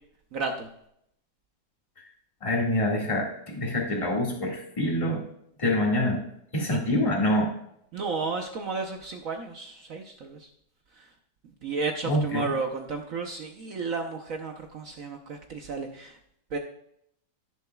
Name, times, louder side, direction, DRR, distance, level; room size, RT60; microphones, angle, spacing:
voice 1, 0.3-0.7 6.6-6.8 7.9-10.5 11.0-11.1 11.6-16.2 16.5-16.6, right 4 dB, 60° right, 4 dB, 1.1 m, -33 dB
voice 2, 2.4-5.2 5.6-6.2 6.5-7.5 12.0-12.5, left 1 dB, 20° left, -2 dB, 1.9 m, -26 dB
14.5 x 6.8 x 2.3 m, 0.72 s
omnidirectional pair, 1.9 m